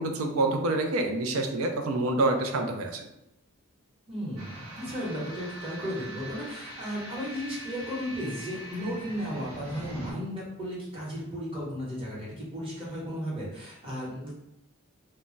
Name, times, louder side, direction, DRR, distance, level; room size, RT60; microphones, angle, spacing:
voice 1, 0.0-3.1, right 2 dB, 70° right, 5 dB, 0.4 m, -27 dB
voice 2, 4.1-14.4, equal, 25° right, -6 dB, 1.0 m, -35 dB
sound 1, 4.4-10.1, equal, 90° right, 0.8 m, -43 dB
2.2 x 2.1 x 3.7 m, 0.87 s
head